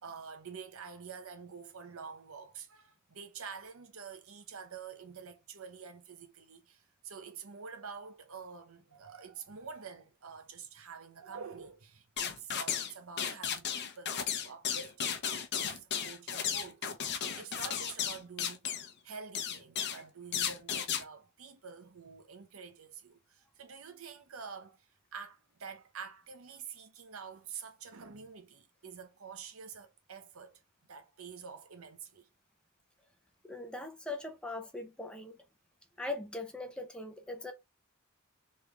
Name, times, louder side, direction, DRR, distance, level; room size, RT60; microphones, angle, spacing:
voice 1, 0.0-16.9 17.1-18.7 19.0-30.6 30.9-32.3, right 6 dB, 80° right, 0.8 m, -48 dB
sound 1, 12.2-12.9 13.2-18.9 19.3-20.0 20.3-21.0, left 8 dB, 55° left, 0.7 m, -34 dB
voice 2, 33.4-35.4 36.0-37.5, left 2 dB, 5° left, 0.7 m, -40 dB
3.6 x 3.3 x 3.3 m
head